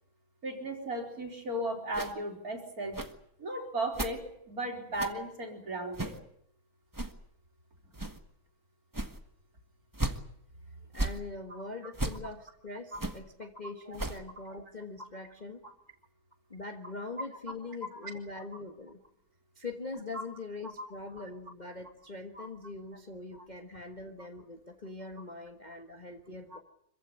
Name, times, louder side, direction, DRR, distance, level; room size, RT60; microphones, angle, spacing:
voice 1, 0.4-3.0 3.4-6.2 12.9-13.0 13.9-14.0 20.1-20.2 20.8-20.9 22.3-22.5 23.3-23.4, right 1 dB, 45° right, 1 dB, 4.7 m, -36 dB
sound 1, 1.9-2.1 2.9-3.1 3.9-4.1 4.9-5.1 5.9-6.2 6.9-7.1 7.9-8.2 8.9-9.2 9.9-10.2 10.9-11.2 11.9-12.2 12.9-13.2 13.9-14.2, right 2 dB, 10° right, 1.2 m, -34 dB
voice 2, 10.9-15.7 16.5-19.0 19.6-26.6, left 3 dB, 25° left, 4 dB, 1.5 m, -42 dB
26.0 x 15.5 x 9.9 m, 0.71 s
omnidirectional pair, 2.2 m